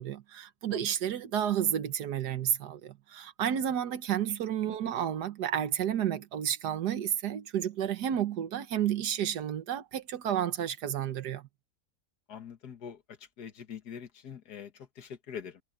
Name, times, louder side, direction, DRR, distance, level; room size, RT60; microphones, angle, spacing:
voice 1, 0.0-11.5, right 10 dB, 90° right, 1.6 m, -31 dB
voice 2, 4.7-5.0 12.3-13.0 13.4-15.6, left 8 dB, 75° left, 2.0 m, -44 dB
omnidirectional pair, 1.7 m